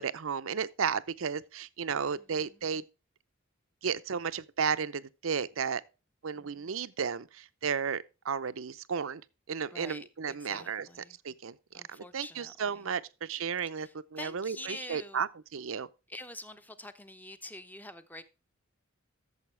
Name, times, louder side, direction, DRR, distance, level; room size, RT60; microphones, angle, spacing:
voice 1, 0.0-2.8 3.8-5.8 6.2-9.2 9.5-10.9 11.2-15.9, right 6 dB, 75° right, 0.6 m, -33 dB
voice 2, 6.3-6.7 9.7-11.2 11.7-12.9 13.8-15.3 16.1-18.2, left 2 dB, 10° left, 0.8 m, -46 dB
13.5 x 7.1 x 3.3 m
head